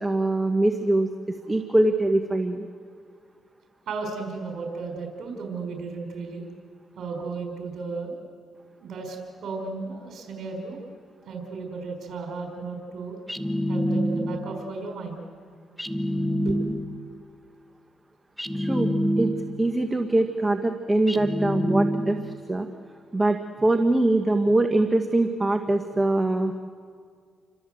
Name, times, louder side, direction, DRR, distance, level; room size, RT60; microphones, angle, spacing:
voice 1, 0.0-2.7 18.5-18.9 19.2-19.3 19.6-22.7 23.1-26.6, right 2 dB, 20° right, 6 dB, 1.5 m, -23 dB
voice 2, 3.9-6.4 7.0-8.1 8.8-9.2 9.4-10.8 11.3-13.2 13.7-15.2 16.4-16.7, right 4 dB, 65° right, 3 dB, 5.0 m, -34 dB
sound 1, 13.3-14.6 15.8-17.1 18.4-19.8 21.1-22.4, equal, 5° left, 1.5 m, -27 dB
29.0 x 25.0 x 7.9 m, 2.1 s
cardioid pair, 90°, 0 cm